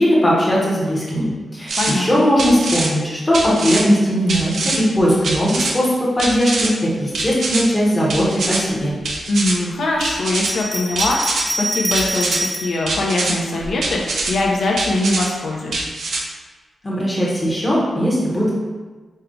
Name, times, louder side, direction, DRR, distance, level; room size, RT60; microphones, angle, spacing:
voice 1, 0.0-8.9 16.8-18.5, equal, 20° left, -6 dB, 1.0 m, -18 dB
sound 1, 1.7-1.9 2.4-2.9 3.3-3.8 4.3-4.8 5.2-5.7 6.2-6.7 7.1-7.6 8.1-8.6 9.0-9.5 10.0-10.5 11.0-11.4 11.9-12.4 12.9-13.3 13.8-14.3 14.8-15.3 15.7-16.2, right 3 dB, 65° right, 0.6 m, -23 dB
voice 2, 9.3-15.9, left 2 dB, 65° left, -2 dB, 0.8 m, -22 dB
Bell, 10.3-12.8 13.5-14.5, equal, 5° right, 0.6 m, -25 dB
5.3 x 2.3 x 3.7 m, 1.3 s
wide cardioid pair, 170°, 0 cm